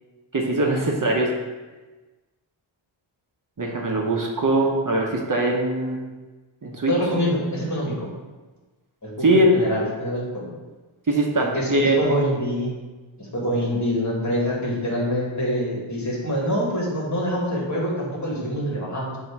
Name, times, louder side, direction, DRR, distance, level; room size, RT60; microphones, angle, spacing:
voice 1, 0.3-1.3 3.6-6.0 6.6-6.9 9.2-9.6 11.1-12.0, right 1 dB, 40° right, -1 dB, 0.9 m, -21 dB
voice 2, 6.9-8.1 9.0-10.5 11.5-12.7 13.2-19.2, equal, 35° left, -3 dB, 1.9 m, -25 dB
7.5 x 2.9 x 5.9 m, 1.2 s
wide cardioid pair, 110°, 47 cm